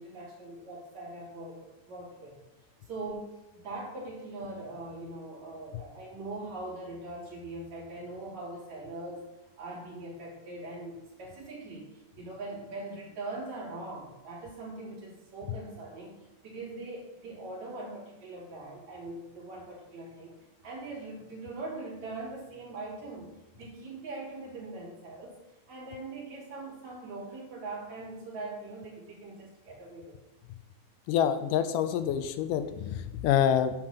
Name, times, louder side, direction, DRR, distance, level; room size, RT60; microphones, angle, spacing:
voice 1, 0.0-2.4 2.9-9.3 9.6-20.4 20.6-25.4 25.7-30.2, right 2 dB, 60° right, -5 dB, 4.4 m, -41 dB
voice 2, 31.1-33.7, left 9 dB, 85° left, 10 dB, 2.3 m, -27 dB
11.0 x 4.9 x 7.5 m, 0.99 s
omnidirectional pair, 3.7 m